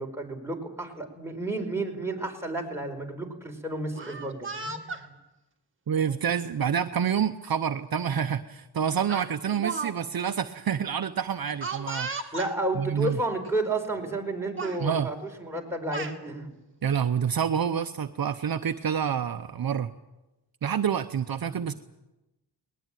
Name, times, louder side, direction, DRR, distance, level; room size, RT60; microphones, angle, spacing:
voice 1, 0.0-5.1 12.3-16.5 21.4-21.7, right 2 dB, 5° right, 0 dB, 4.7 m, -32 dB
Speech, 3.8-5.0 6.0-6.2 7.4-7.5 7.9-8.1 9.1-9.9 10.2-10.3 11.6-12.5 13.4-13.5 13.9-14.3 14.6-14.8 15.6-16.2, right 4 dB, 30° right, 2.2 m, -35 dB
voice 2, 5.9-12.3 12.7-13.2 14.8-15.1 16.8-19.9 20.6-21.7, right 8 dB, 55° right, 8 dB, 0.9 m, -28 dB
20.5 x 20.0 x 9.1 m, 1.0 s
wide cardioid pair, 110°, 42 cm